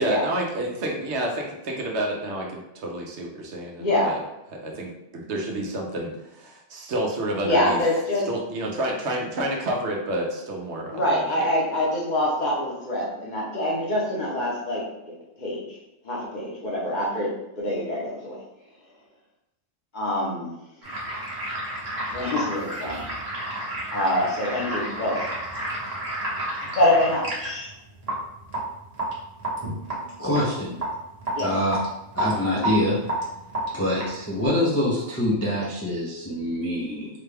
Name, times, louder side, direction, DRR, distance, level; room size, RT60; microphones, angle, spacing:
voice 1, 0.0-4.2 4.5-7.8 8.3-11.5, right 1 dB, 70° right, 0 dB, 0.9 m, -29 dB
voice 2, 3.8-4.1 7.4-8.2 10.9-14.8 15.4-15.8 16.0-17.3 17.6-18.4 19.9-20.5 22.1-23.1 23.9-25.2 26.6-27.7 31.3-31.5, left 1 dB, 45° left, -4 dB, 0.9 m, -25 dB
sound 1, 20.8-34.5, right 1 dB, 35° right, 1.0 m, -31 dB
voice 3, 30.2-30.8 31.4-31.8 32.2-33.0 33.7-37.1, left 1 dB, 20° left, -7 dB, 0.4 m, -25 dB
3.9 x 2.2 x 3.3 m, 0.89 s
omnidirectional pair, 1.2 m